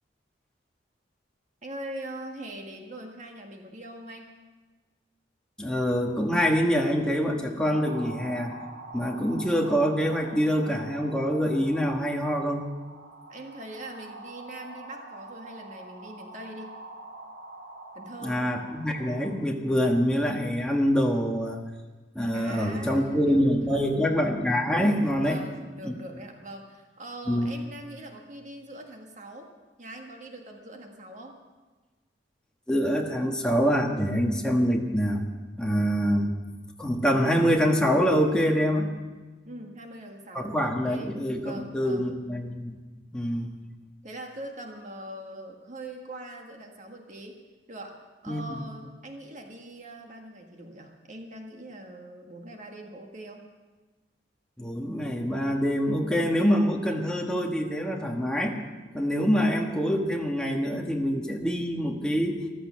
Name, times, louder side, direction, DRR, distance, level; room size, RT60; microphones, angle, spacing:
voice 1, 1.6-4.3 13.3-16.7 17.9-18.4 22.3-24.1 25.2-29.5 29.8-31.4 39.4-41.1 41.4-42.1 44.0-47.3 47.7-53.4, right 1 dB, 45° right, 3 dB, 1.6 m, -42 dB
voice 2, 5.6-8.5 8.9-12.7 18.2-21.6 22.1-25.4 25.8-26.0 27.3-27.5 32.7-35.2 35.6-36.3 36.8-38.9 40.3-42.8 43.1-43.6 48.3-48.6 54.6-58.5 58.9-62.4, equal, 5° left, 0 dB, 1.5 m, -25 dB
sound 1, 7.6-19.3, right 2 dB, 80° right, 2.3 m, -45 dB
14.5 x 12.5 x 6.3 m, 1.3 s
head